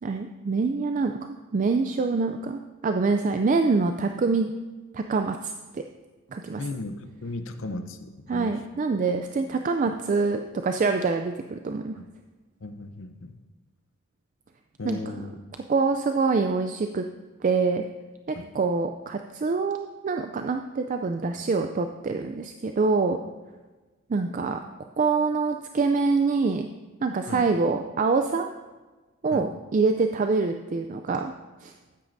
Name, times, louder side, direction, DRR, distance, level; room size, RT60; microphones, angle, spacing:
voice 1, 0.0-4.5 4.9-5.8 6.3-6.6 8.3-12.0 14.8-15.3 15.7-17.0 17.4-17.8 18.3-23.2 24.1-24.6 25.0-26.7 27.0-28.5 29.2-31.3 31.6-31.7, right 4 dB, 40° right, 6 dB, 0.3 m, -25 dB
voice 2, 6.6-8.5 12.0-12.1 12.6-13.3 14.8-15.4 18.3-18.5 27.3-27.4 29.3-29.5, left 2 dB, 65° left, 9 dB, 0.7 m, -36 dB
13.0 x 9.1 x 2.6 m, 1.3 s
head